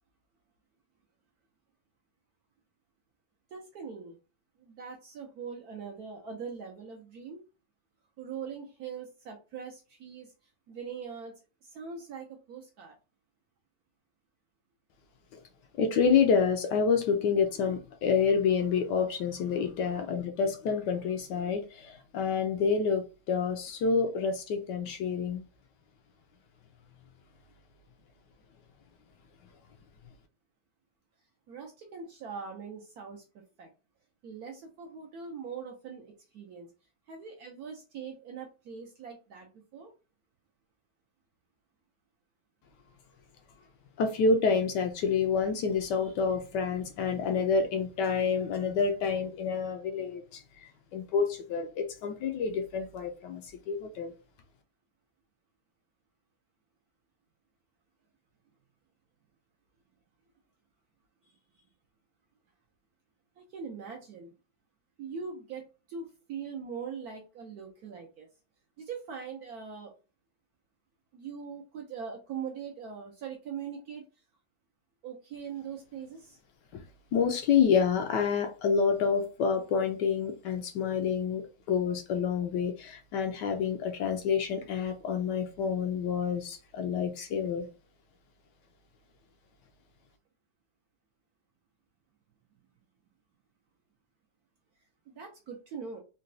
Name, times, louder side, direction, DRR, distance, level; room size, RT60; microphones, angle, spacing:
voice 1, 3.5-4.2 4.6-7.4 8.2-10.3 10.7-11.3 11.6-12.9 31.5-33.2 33.6-33.7 34.2-36.7 37.1-39.9 63.4-64.3 65.0-68.3 68.8-69.9 71.1-74.1 75.0-76.4 95.1-96.0, right 6 dB, 70° right, 0.9 m, -42 dB
voice 2, 15.8-25.4 44.0-50.4 50.9-53.4 53.7-54.1 76.7-76.8 77.1-87.7, left 5 dB, 75° left, 1.1 m, -28 dB
3.9 x 2.2 x 2.6 m
omnidirectional pair, 2.1 m